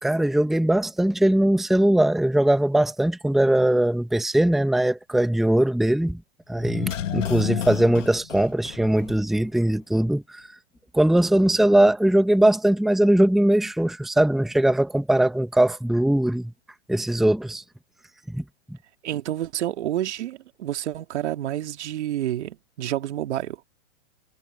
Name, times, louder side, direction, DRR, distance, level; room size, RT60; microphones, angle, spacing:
voice 1, 0.0-6.2 6.5-10.5 10.9-16.5 16.9-17.6 18.3-18.4, right 1 dB, ahead, 1.1 m, -20 dB
sound 1, 6.6-9.5 9.7-9.8, left 10 dB, 80° left, 2.3 m, -31 dB
voice 2, 19.0-23.6, right 12 dB, 65° right, 2.3 m, -29 dB
hypercardioid pair, 145°, 37 cm